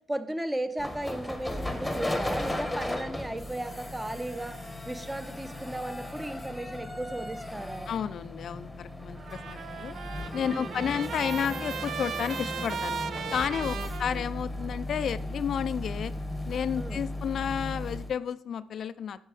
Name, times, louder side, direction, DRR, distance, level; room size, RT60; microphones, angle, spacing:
voice 1, 0.1-4.6 4.8-7.9 10.5-10.8 13.6-14.2 16.8-17.0, right 1 dB, 10° right, 10 dB, 0.8 m, -36 dB
sound 1, 0.8-18.1, left 1 dB, 5° left, 1.1 m, -36 dB
voice 2, 7.9-10.0 10.3-13.0 13.3-16.1 16.5-19.2, left 8 dB, 60° left, 13 dB, 0.4 m, -32 dB
Trumpet, 9.2-14.8, right 6 dB, 60° right, 0.5 m, -37 dB
7.5 x 6.1 x 5.0 m, 0.68 s
cardioid pair, 90°, 0 cm